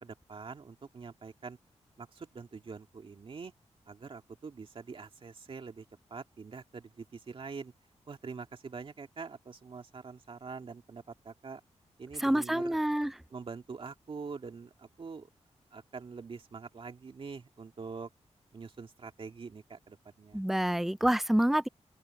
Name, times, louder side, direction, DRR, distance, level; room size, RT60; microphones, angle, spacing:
voice 1, 0.0-1.6 2.0-3.5 3.9-7.7 8.1-11.6 12.0-12.8 13.3-15.3 15.7-18.1 18.5-20.4, right 5 dB, 50° right, 2.3 m, -45 dB
voice 2, 12.2-13.1 20.3-21.7, right 1 dB, ahead, 0.3 m, -27 dB
open air
wide cardioid pair, 110°, 12 cm